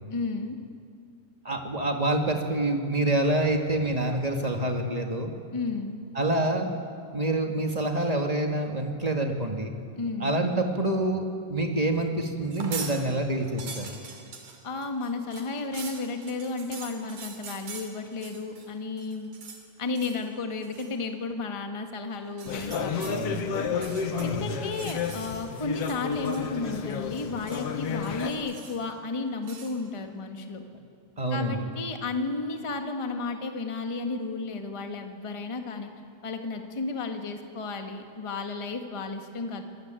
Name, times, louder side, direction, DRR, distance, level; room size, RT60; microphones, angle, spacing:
voice 1, 0.1-0.6 5.5-6.0 9.9-10.3 14.6-19.3 19.8-30.6 31.3-35.9 36.2-39.6, left 3 dB, 25° left, 5 dB, 0.6 m, -33 dB
voice 2, 1.4-5.3 6.1-6.7 7.1-9.7 10.2-13.9 23.1-23.5 24.2-24.6 31.2-31.6, right 1 dB, 20° right, 3 dB, 1.0 m, -27 dB
sound 1, 12.4-13.0 13.3-18.7 19.0-19.6 19.9-20.3 20.6-20.9 22.3-23.2 23.7-25.4 25.7-26.6 26.9-27.7 28.0-28.9 29.4-29.8, right 5 dB, 70° right, 4.3 m, -43 dB
sound 2, 22.5-28.3, left 6 dB, 55° left, 2.1 m, -31 dB
26.5 x 20.5 x 9.1 m, 2.4 s
omnidirectional pair, 3.8 m